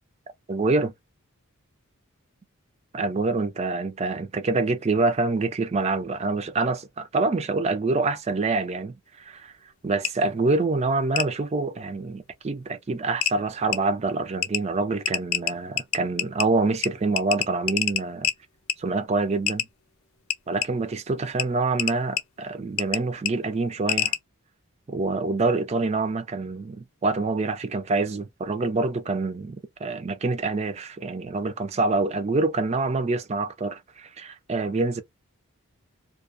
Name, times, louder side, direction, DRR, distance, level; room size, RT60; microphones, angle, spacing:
voice 1, 0.5-0.9 2.9-9.5 9.8-18.3 18.8-19.7 20.5-24.1 24.9-35.0, right 3 dB, 30° right, 0.4 m, -26 dB
sound 1, 10.0-10.1 11.2-11.3 12.6-12.7 13.2-13.3 13.7-13.8 14.4-14.6 15.1-16.5 16.8-16.9 17.2-18.4 18.7-18.8 19.5-19.7 20.3-20.7 21.4-21.5 21.8-22.2 22.8-23.0 23.3-23.4 23.9-24.2, left 11 dB, 65° left, 0.5 m, -25 dB
2.4 x 2.1 x 2.5 m
head